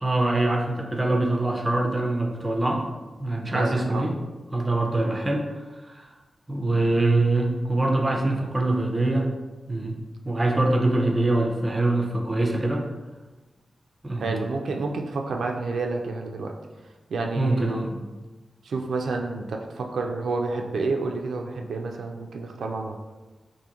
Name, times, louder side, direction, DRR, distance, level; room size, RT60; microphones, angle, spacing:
voice 1, 0.0-2.8 3.2-4.2 4.5-6.1 6.5-9.3 9.7-10.0 10.2-12.8 14.0-14.3 17.4-18.0, right 2 dB, 15° right, 1 dB, 0.4 m, -24 dB
voice 2, 3.5-4.1 5.0-5.2 14.2-16.5 17.1-17.9 18.6-23.0, right 3 dB, 90° right, 3 dB, 0.3 m, -29 dB
2.8 x 2.5 x 3.7 m, 1.2 s
wide cardioid pair, 165°, 0 cm